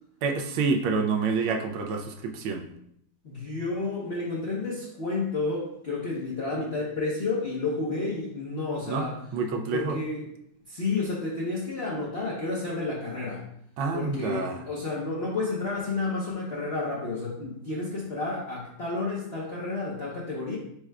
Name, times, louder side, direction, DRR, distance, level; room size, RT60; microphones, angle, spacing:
voice 1, 0.2-2.7 8.9-9.1 9.3-10.0 13.8-14.6, right 4 dB, 75° right, 4 dB, 1.3 m, -28 dB
voice 2, 3.2-9.2 9.7-10.2 10.7-13.4 13.9-20.6, left 3 dB, 75° left, -6 dB, 0.5 m, -31 dB
4.8 x 2.2 x 4.6 m, 0.72 s
omnidirectional pair, 2.3 m